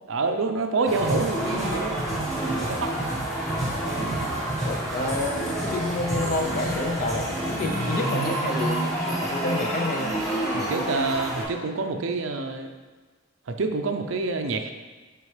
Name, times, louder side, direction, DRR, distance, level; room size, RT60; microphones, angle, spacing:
voice 1, 0.1-2.0 2.6-3.1 10.7-12.7 13.5-14.7, right 3 dB, 65° right, 6 dB, 0.5 m, -27 dB
sound 1, 0.8-11.4, right 1 dB, ahead, 1.7 m, -28 dB
voice 2, 4.6-10.2 10.5-10.8, left 2 dB, 45° left, 4 dB, 0.5 m, -29 dB
6.8 x 4.3 x 3.2 m, 1.3 s
head